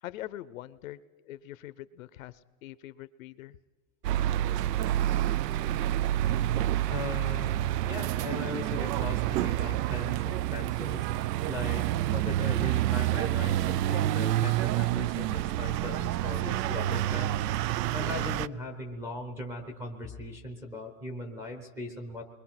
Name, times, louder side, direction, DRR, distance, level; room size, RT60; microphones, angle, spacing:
voice 1, 0.0-3.6, left 14 dB, 55° left, 16 dB, 0.7 m, -43 dB
sound 1, 4.0-18.5, right 13 dB, 90° right, 0.6 m, -28 dB
voice 2, 6.9-11.9 12.1-17.4 17.9-22.2, left 2 dB, 5° right, 1 dB, 0.7 m, -39 dB
29.0 x 22.0 x 5.9 m, 1.2 s
supercardioid pair, 175°, 47 cm